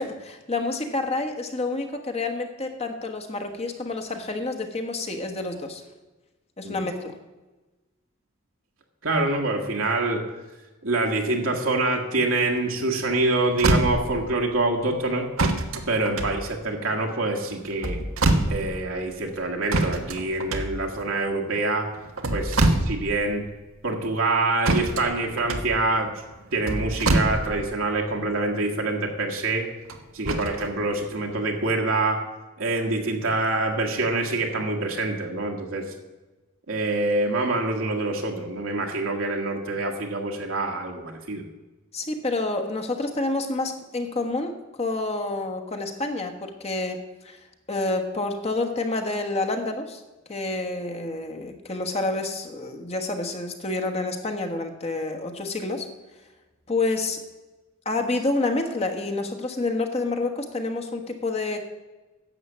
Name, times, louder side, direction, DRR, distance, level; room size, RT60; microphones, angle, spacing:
voice 1, 0.0-5.8 6.6-7.1 41.9-47.4 47.7-50.0 50.3-55.9 56.7-57.2 57.8-61.6, left 2 dB, 30° left, 4 dB, 1.3 m, -28 dB
voice 2, 9.0-10.2 10.8-15.3 15.9-18.0 18.5-21.9 22.3-23.4 23.8-26.1 26.5-29.6 30.1-32.2 32.6-35.8 36.7-41.4, right 2 dB, 70° right, 0 dB, 1.6 m, -25 dB
sound 1, 13.1-13.2 13.5-14.3 15.4-17.0 17.7-18.9 19.7-21.1 22.0-23.3 23.5-23.6 24.6-27.9 29.9-30.7 31.3-31.4, right 2 dB, 90° right, 1.3 m, -25 dB
11.0 x 7.4 x 7.3 m, 1.1 s
head